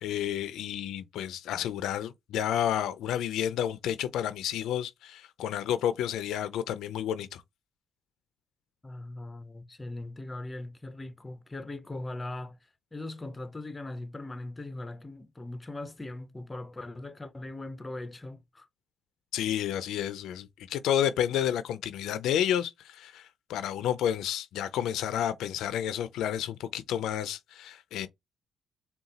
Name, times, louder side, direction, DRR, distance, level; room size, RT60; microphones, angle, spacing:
voice 1, 0.0-7.4 19.3-28.1, left 10 dB, 85° left, 0.4 m, -30 dB
voice 2, 8.8-12.6 12.9-18.7, left 2 dB, 20° left, 0.6 m, -40 dB
4.0 x 2.3 x 3.9 m
cardioid pair, 90°, 0 cm